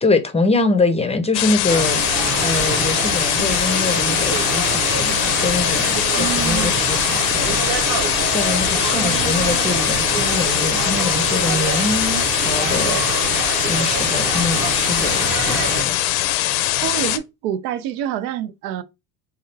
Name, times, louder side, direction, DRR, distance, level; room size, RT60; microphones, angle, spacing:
voice 1, 0.0-2.0 2.4-7.7 8.3-13.0 13.7-16.0, left 3 dB, 15° left, 0.5 m, -24 dB
sound 1, 1.3-17.2, left 14 dB, 70° left, 0.7 m, -21 dB
sound 2, 1.7-15.8, right 6 dB, 45° right, 1.0 m, -25 dB
voice 2, 6.2-6.8 9.0-9.8 16.8-18.8, right 11 dB, 80° right, 0.7 m, -27 dB
4.4 x 2.3 x 3.2 m
supercardioid pair, 100°, 47 cm